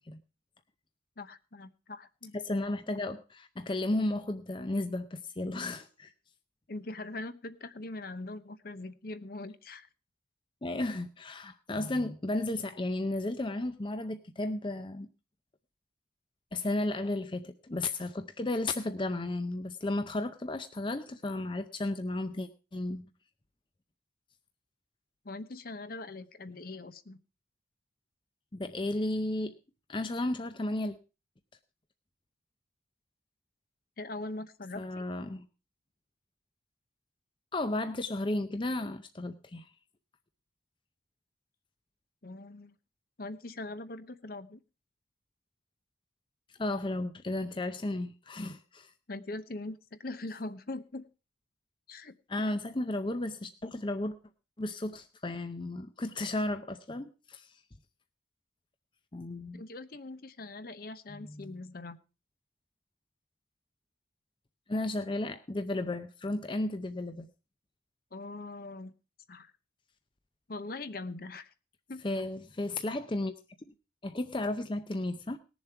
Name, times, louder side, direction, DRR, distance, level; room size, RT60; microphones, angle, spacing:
voice 1, 1.2-2.3 6.7-9.9 25.2-27.2 34.0-35.0 42.2-42.7 43.2-44.6 49.1-51.1 51.9-52.2 59.5-62.0 68.1-68.9 69.3-69.5 70.5-71.5 71.9-72.0, left 2 dB, 50° left, 12 dB, 0.8 m, -42 dB
voice 2, 2.3-6.1 10.6-15.1 16.5-23.1 28.5-29.6 29.9-31.0 34.7-35.5 37.5-39.7 46.6-48.9 52.3-54.1 54.6-57.6 59.1-59.6 61.1-61.5 64.7-67.3 72.0-73.3 74.0-75.4, left 2 dB, 25° left, 9 dB, 0.6 m, -34 dB
19.0 x 7.2 x 4.5 m, 0.32 s
head